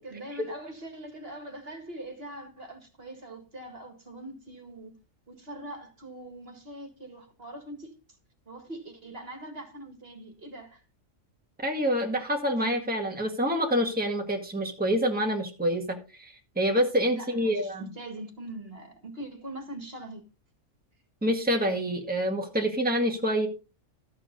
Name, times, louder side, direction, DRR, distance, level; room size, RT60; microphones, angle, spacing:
voice 1, 0.0-5.0 5.3-7.9 8.5-10.8 17.1-20.2, right 1 dB, 50° right, 2.1 m, -42 dB
voice 2, 11.6-17.9 21.2-23.5, equal, 5° right, 1.8 m, -27 dB
13.0 x 7.6 x 3.9 m
omnidirectional pair, 1.3 m